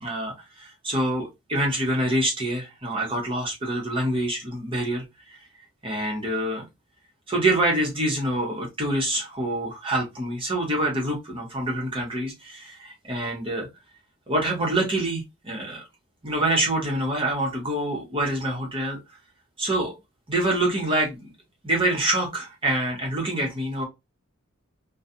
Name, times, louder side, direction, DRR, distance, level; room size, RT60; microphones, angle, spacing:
voice 1, 0.0-5.0 5.8-6.6 7.3-13.7 14.3-15.8 16.2-19.0 19.6-20.0 20.3-21.3 21.6-23.9, right 1 dB, 25° right, 1.1 m, -26 dB
3.1 x 2.3 x 2.6 m
head